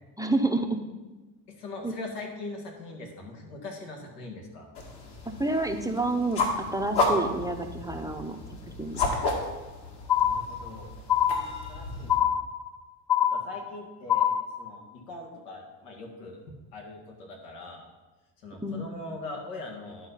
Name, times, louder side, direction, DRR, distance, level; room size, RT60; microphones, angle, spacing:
voice 1, 0.2-0.8 1.8-1.9 5.4-8.4 8.7-9.0 18.6-18.8, right 2 dB, 10° right, 3 dB, 0.6 m, -29 dB
voice 2, 1.5-4.7 9.6-10.9 11.7-12.4 13.2-14.3 14.6-17.9 18.4-20.1, left 2 dB, 85° left, 1 dB, 2.1 m, -41 dB
sound 1, 4.7-12.2, left 2 dB, 55° left, 2.2 m, -32 dB
sound 2, 10.1-10.8 11.1-11.8 12.1-12.8 13.1-13.8 14.1-14.8, left 10 dB, 10° left, 0.9 m, -25 dB
11.0 x 4.4 x 5.7 m, 1.1 s
supercardioid pair, 90°, 46 cm